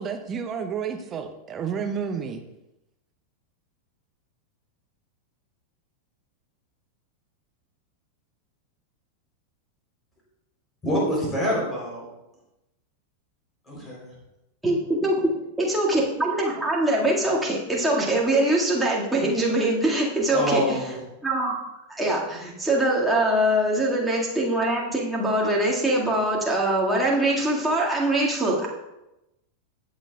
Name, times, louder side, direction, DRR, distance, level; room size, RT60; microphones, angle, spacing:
voice 1, 0.0-2.4, right 6 dB, 25° right, 5 dB, 0.9 m, -30 dB
voice 2, 10.8-12.1 13.7-14.1 20.3-20.9, equal, 15° left, -4 dB, 3.5 m, -26 dB
voice 3, 14.6-20.9 21.2-28.7, right 1 dB, 5° right, -4 dB, 1.9 m, -23 dB
17.0 x 6.3 x 2.3 m, 0.92 s
figure-of-eight pair, 90°, 0 cm